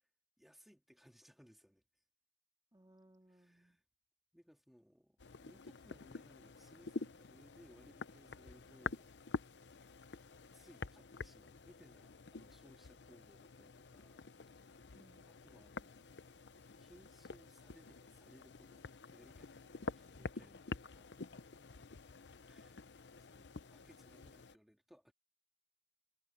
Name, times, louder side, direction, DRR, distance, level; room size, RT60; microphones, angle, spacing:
voice 1, 0.4-1.8 3.3-3.8 4.3-9.3 10.5-14.3 15.3-16.2 16.8-20.8 22.4-22.8 23.2-25.1, equal, ahead, 2.6 m, -64 dB
voice 2, 2.7-3.8 14.9-15.3 21.0-21.6, right 1 dB, 20° right, 2.2 m, -67 dB
sound 1, 5.2-24.5, left 4 dB, 85° left, 0.8 m, -48 dB
head